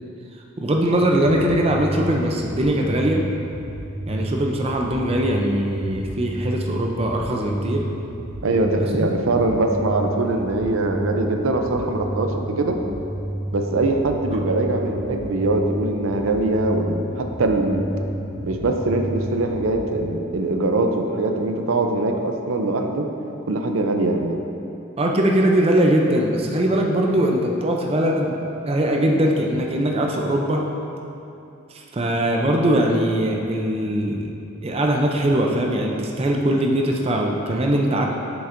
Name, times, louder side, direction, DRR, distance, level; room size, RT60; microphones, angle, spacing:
voice 1, 0.6-3.2 4.1-7.9 8.8-9.1 25.0-30.6 31.7-34.3 34.6-38.1, right 1 dB, 30° right, 0 dB, 0.5 m, -21 dB
sound 1, 0.9-19.9, right 1 dB, 5° left, 1.5 m, -31 dB
voice 2, 8.4-12.8 13.5-17.8 18.4-23.1 23.5-24.4, right 2 dB, 80° right, 4 dB, 0.5 m, -22 dB
7.7 x 7.0 x 2.6 m, 2.8 s
head